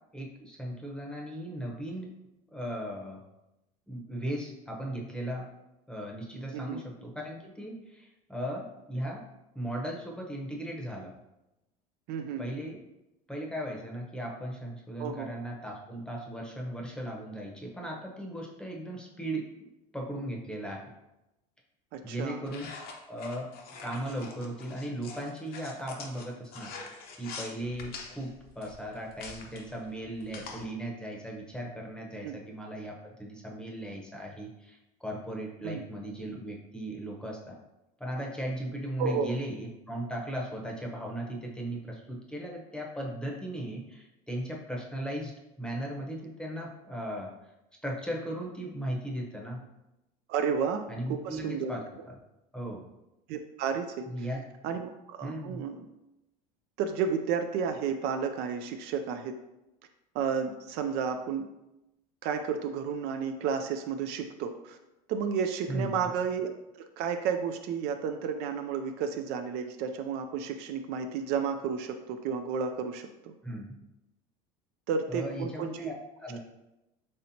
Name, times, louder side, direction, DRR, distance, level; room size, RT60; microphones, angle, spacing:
voice 1, 0.1-2.1 2.5-3.2 3.9-5.5 5.9-9.2 9.5-11.1 12.4-12.8 13.3-19.7 19.9-20.8 22.0-22.7 23.1-23.5 23.8-26.7 27.2-37.6 38.0-47.3 47.8-49.6 50.9-51.8 52.1-52.2 52.5-52.8 54.1-54.4 55.2-55.6 65.7-66.1 73.4-73.7 75.1-75.9 76.2-76.4, right 1 dB, 5° left, -1 dB, 0.8 m, -37 dB
voice 2, 12.1-12.4 15.0-15.3 21.9-22.4 32.2-32.4 35.6-35.9 39.0-39.3 50.3-50.8 51.1-51.7 53.3-54.1 54.6-55.9 56.8-59.3 60.1-61.5 62.2-64.8 65.1-66.5 67.0-73.3 74.9-75.9, right 6 dB, 60° right, 6 dB, 0.4 m, -32 dB
sound 1, 22.5-30.7, left 4 dB, 55° left, 0.7 m, -45 dB
4.3 x 3.2 x 2.7 m, 0.94 s
supercardioid pair, 105°, 19 cm